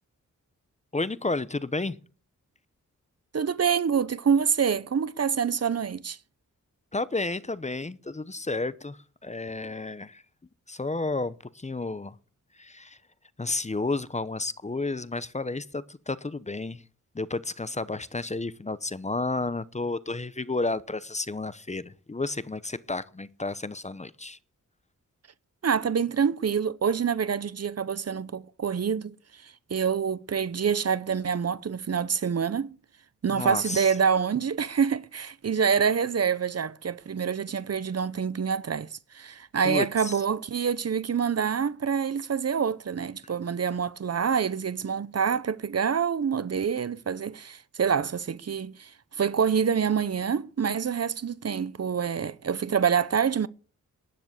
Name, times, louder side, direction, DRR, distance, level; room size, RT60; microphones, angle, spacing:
voice 1, 0.9-2.0 6.9-10.2 10.7-12.1 12.6-13.0 13.4-16.8 17.1-24.4 33.3-33.9 39.6-40.2, left 3 dB, 20° left, 0.8 m, -31 dB
voice 2, 3.3-6.2 25.6-29.1 29.4-32.7 33.2-38.9 39.1-48.9 49.2-53.5, right 7 dB, 50° right, 0.8 m, -26 dB
12.0 x 10.0 x 8.1 m
wide cardioid pair, 100°, 31 cm